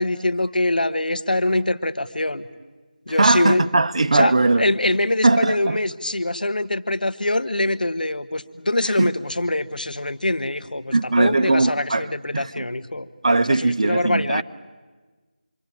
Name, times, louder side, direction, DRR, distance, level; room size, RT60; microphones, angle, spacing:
voice 1, 0.0-2.5 3.1-3.7 4.1-13.1 13.5-14.4, left 2 dB, 85° left, 1.7 m, -24 dB
voice 2, 3.2-4.6 5.2-5.8 9.0-9.1 10.9-12.7 13.2-14.4, right 2 dB, 45° right, 0.8 m, -19 dB
26.5 x 25.0 x 8.8 m
figure-of-eight pair, 170°, 5 cm